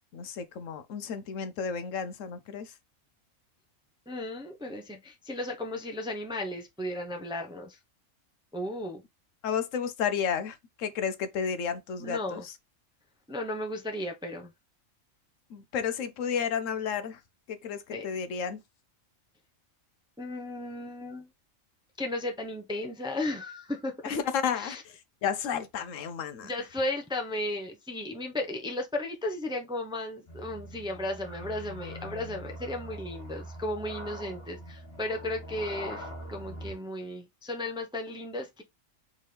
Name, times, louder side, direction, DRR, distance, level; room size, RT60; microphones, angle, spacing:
voice 1, 0.0-2.7 9.4-12.5 15.5-17.2 17.5-18.6 24.0-26.5, left 7 dB, 75° left, 1.0 m, -32 dB
voice 2, 4.1-7.8 8.5-9.0 12.0-12.5 13.3-14.5 17.9-18.1 20.2-21.3 22.0-24.2 24.5-24.8 26.4-38.6, left 1 dB, 5° right, 0.6 m, -35 dB
sound 1, 30.3-36.7, equal, 45° left, 1.9 m, -42 dB
4.3 x 3.6 x 3.3 m
omnidirectional pair, 1.4 m